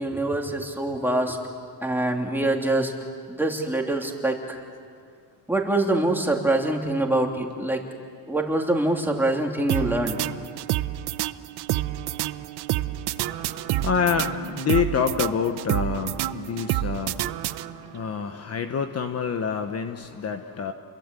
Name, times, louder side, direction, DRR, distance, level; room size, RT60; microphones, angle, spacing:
voice 1, 0.0-1.4 1.8-2.9 3.3-4.6 5.5-7.8 8.3-10.2, right 2 dB, 5° right, 1 dB, 3.1 m, -24 dB
sound 1, 9.7-18.0, right 14 dB, 80° right, 0.8 m, -28 dB
voice 2, 13.2-20.7, left 6 dB, 40° left, 7 dB, 1.2 m, -27 dB
30.0 x 22.5 x 8.3 m, 2.1 s
cardioid pair, 120°, 39 cm